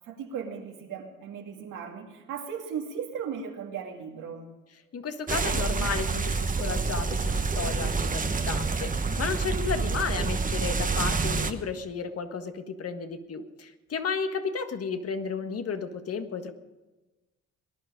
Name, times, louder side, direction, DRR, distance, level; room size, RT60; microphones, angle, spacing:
voice 1, 0.1-4.5, right 7 dB, 85° right, 1 dB, 2.6 m, -37 dB
voice 2, 4.9-16.5, left 5 dB, 50° left, 7 dB, 1.6 m, -33 dB
sound 1, 5.3-11.5, right 4 dB, 25° right, 1.1 m, -28 dB
19.5 x 11.0 x 5.2 m, 1.1 s
cardioid pair, 90°, 30 cm